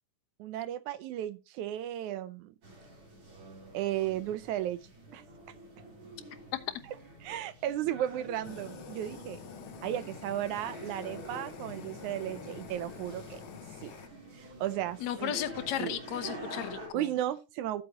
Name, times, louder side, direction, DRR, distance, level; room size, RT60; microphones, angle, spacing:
voice 1, 0.4-2.5 3.7-4.8 5.1-5.2 6.9-9.4 9.8-13.4 13.8-13.9 14.4-15.4 15.8-16.0 16.9-17.8, right 12 dB, 75° right, 1.9 m, -35 dB
sound 1, 2.6-16.9, right 1 dB, 45° right, 4.5 m, -47 dB
Fire, 8.4-14.1, left 10 dB, 80° left, 1.4 m, -48 dB
voice 2, 15.0-17.1, left 11 dB, 65° left, 2.1 m, -34 dB
13.5 x 8.0 x 2.9 m
omnidirectional pair, 3.7 m